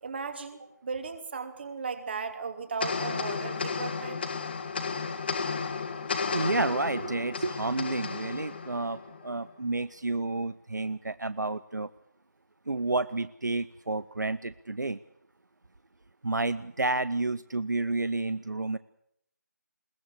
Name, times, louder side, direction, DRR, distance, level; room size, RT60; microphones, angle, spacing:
voice 1, 0.0-4.2, right 5 dB, 35° right, 8 dB, 2.7 m, -36 dB
sound 1, 2.8-9.4, left 5 dB, 35° left, 1.8 m, -33 dB
voice 2, 6.3-11.9 12.7-15.0 16.2-18.8, right 2 dB, 75° right, 15 dB, 0.8 m, -30 dB
21.5 x 19.0 x 8.3 m, 0.75 s
figure-of-eight pair, 160°, 10 cm